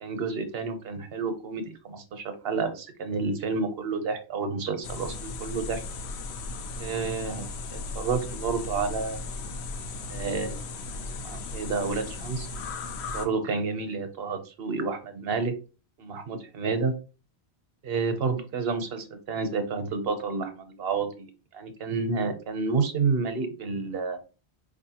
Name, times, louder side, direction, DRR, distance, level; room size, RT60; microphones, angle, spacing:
voice 1, 0.0-5.8 6.8-9.2 10.1-10.6 11.2-12.5 13.1-15.5 16.0-16.9 17.8-24.2, right 4 dB, 65° right, 8 dB, 0.9 m, -30 dB
sound 1, 4.8-13.3, left 3 dB, 80° left, 0.8 m, -36 dB
4.2 x 2.6 x 2.8 m, 0.33 s
omnidirectional pair, 1.1 m